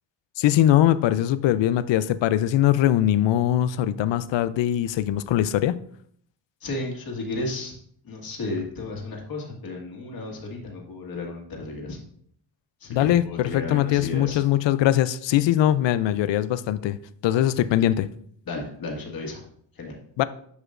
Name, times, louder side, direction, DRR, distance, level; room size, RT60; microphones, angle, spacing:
voice 1, 0.4-5.7 12.9-17.0 17.2-18.1 20.2-20.3, left 12 dB, 75° left, 0.5 m, -21 dB
voice 2, 6.6-7.7 8.0-12.0 12.8-14.4 18.4-19.4 19.7-20.0, left 2 dB, 50° left, 1.8 m, -33 dB
11.0 x 4.9 x 2.5 m
wide cardioid pair, 150°, 44 cm